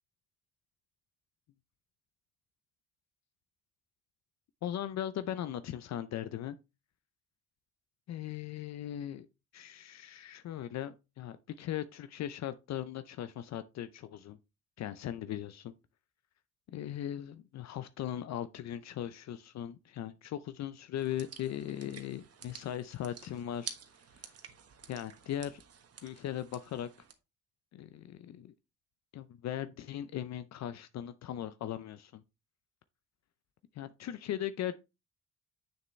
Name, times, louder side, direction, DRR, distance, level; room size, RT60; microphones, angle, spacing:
voice 1, 4.6-6.6 8.1-9.3 9.5-14.4 14.8-15.7 16.7-23.7 24.9-25.6 26.0-26.9 27.7-28.5 29.1-32.2 33.7-34.7, left 11 dB, 60° left, 0.6 m, -38 dB
sound 1, 21.0-27.1, right 7 dB, 55° right, 1.3 m, -50 dB
6.9 x 6.5 x 3.2 m
cardioid pair, 90°, 30 cm